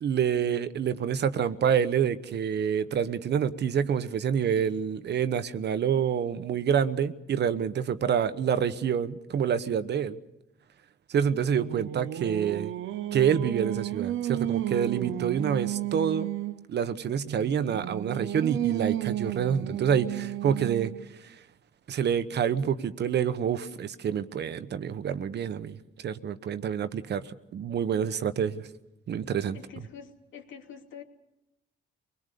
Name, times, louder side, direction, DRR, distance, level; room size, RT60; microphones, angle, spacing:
voice 1, 0.0-10.2 11.1-12.7 13.1-16.3 16.7-20.9 21.2-21.4 21.9-28.6 29.1-29.6, right 8 dB, 60° right, 12 dB, 1.1 m, -27 dB
Singing, 11.2-16.6 17.3-21.1, right 14 dB, 80° right, 0.7 m, -33 dB
voice 2, 29.5-31.0, left 7 dB, 75° left, 3 dB, 3.0 m, -46 dB
23.5 x 20.5 x 6.9 m, 0.89 s
cardioid pair, 90°, 20 cm